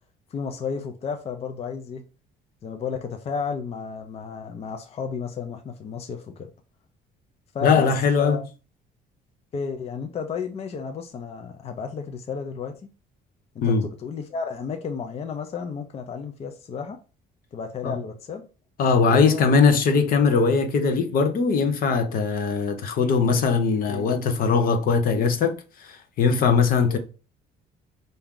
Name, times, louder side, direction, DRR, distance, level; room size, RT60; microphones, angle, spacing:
voice 1, 0.3-2.1 2.6-6.5 7.5-8.4 9.5-12.9 13.5-17.0 17.5-18.5 19.0-19.5 23.3-23.4 23.9-24.1 25.0-25.3 26.8-27.0, left 6 dB, 35° left, 0.5 m, -32 dB
voice 2, 7.6-8.4 13.6-13.8 17.8-18.0 18.8-25.5 25.8-27.0, left 5 dB, 60° left, 0.8 m, -20 dB
4.6 x 2.7 x 3.6 m
cardioid pair, 110°, 17 cm